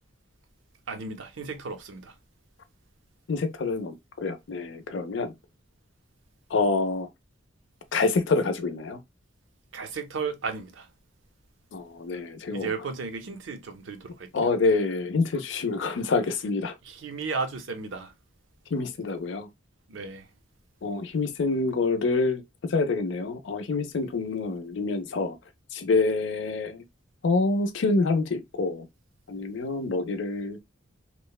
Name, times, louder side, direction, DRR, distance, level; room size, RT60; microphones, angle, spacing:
voice 1, 0.9-2.1 9.7-10.9 12.5-14.3 16.8-18.1 19.9-20.3, right 4 dB, 70° right, 0.6 m, -34 dB
voice 2, 3.3-5.3 6.5-7.1 7.9-9.0 11.7-12.7 14.3-16.7 18.7-19.5 20.8-22.4 22.7-25.3 25.7-26.8 27.2-28.9 29.3-30.6, left 3 dB, 65° left, 0.5 m, -26 dB
2.9 x 2.1 x 2.2 m
head